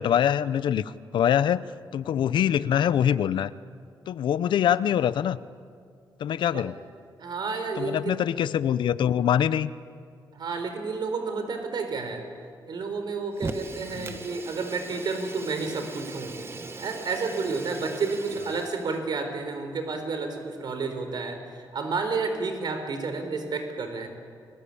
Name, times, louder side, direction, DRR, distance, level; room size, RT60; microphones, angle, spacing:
voice 1, 0.0-1.6 1.9-3.5 4.1-5.4 6.2-6.8 7.8-9.7 14.0-14.2, left 9 dB, 90° left, 16 dB, 0.7 m, -24 dB
voice 2, 7.2-8.2 10.4-12.2 12.7-16.4 16.8-24.1, right 4 dB, 65° right, 6 dB, 4.3 m, -31 dB
Fire, 13.3-19.0, right 3 dB, 30° right, 1.5 m, -39 dB
29.5 x 22.0 x 8.6 m, 2.3 s
cardioid pair, 115°, 8 cm